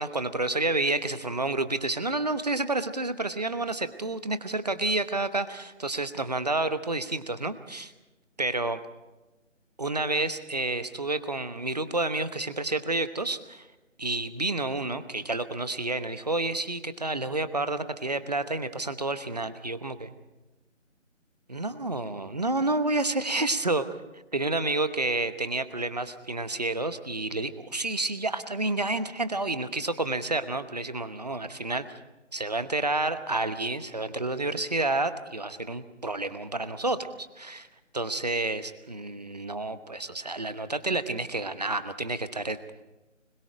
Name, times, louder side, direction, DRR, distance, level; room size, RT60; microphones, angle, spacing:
voice 1, 0.0-7.9 8.4-8.8 9.8-13.7 14.0-20.1 21.5-23.9 24.3-31.8 32.3-37.7 37.9-42.6, right 2 dB, 30° right, 12 dB, 1.0 m, -29 dB
25.5 x 21.5 x 5.0 m, 1.1 s
figure-of-eight pair, 165°, 38 cm